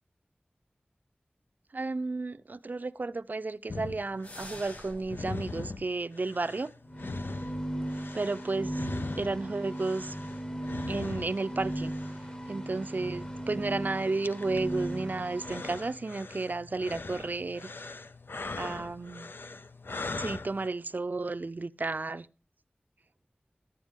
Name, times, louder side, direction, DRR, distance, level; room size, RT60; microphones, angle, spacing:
voice 1, 1.7-6.7 8.1-8.9 9.2-10.2 10.9-11.9 12.5-17.7 18.6-19.3 20.2-22.3, right 3 dB, 60° right, 0.4 m, -32 dB
sound 1, 3.7-20.7, left 3 dB, 85° left, 0.5 m, -42 dB
sound 2, 4.2-5.2, left 1 dB, 45° left, 5.7 m, -46 dB
sound 3, 6.8-15.9, right 1 dB, 25° left, 1.2 m, -37 dB
11.5 x 8.8 x 3.5 m
wide cardioid pair, 55°, 4 cm